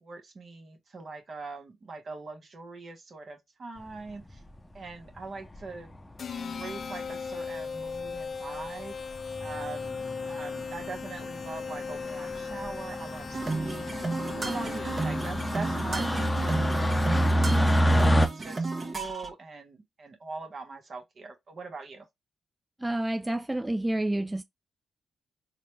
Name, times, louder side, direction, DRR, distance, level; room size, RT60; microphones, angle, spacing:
voice 1, 0.0-4.4 4.7-6.0 6.4-8.9 9.4-10.0 10.3-14.0 14.3-22.0, right 3 dB, 55° right, 1.3 m, -42 dB
fnk airplane texan, 4.1-4.6 5.5-6.0 6.8-6.9 7.1-7.2 7.5-7.6 7.9-8.2 8.6-8.9 9.1-18.3, equal, 15° left, 0.7 m, -28 dB
sound 1, 6.2-17.6, left 5 dB, 60° left, 0.4 m, -38 dB
sound 2, 13.3-19.3, right 3 dB, 40° right, 1.0 m, -32 dB
voice 2, 22.8-24.4, right 1 dB, 15° right, 0.3 m, -29 dB
4.0 x 2.3 x 3.2 m
supercardioid pair, 45°, 0 cm